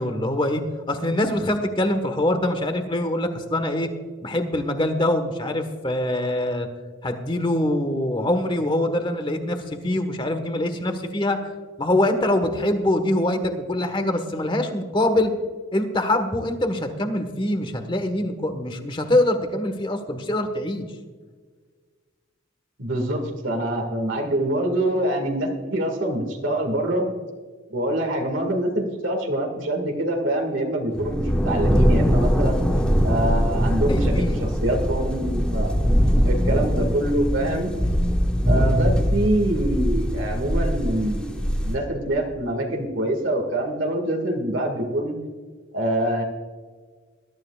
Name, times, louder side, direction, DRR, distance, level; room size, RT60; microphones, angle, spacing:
voice 1, 0.0-3.9 4.2-6.7 7.0-11.5 11.8-15.3 15.7-20.9 33.9-34.4, left 1 dB, 25° left, 7 dB, 1.4 m, -24 dB
voice 2, 22.8-27.1 27.7-32.6 33.0-34.1 34.4-35.7 36.2-37.7 38.5-45.2 45.7-46.2, right 1 dB, 80° right, 1 dB, 2.1 m, -25 dB
sound 1, 30.9-41.8, equal, 5° left, 1.2 m, -22 dB
21.0 x 12.5 x 2.4 m, 1.5 s
head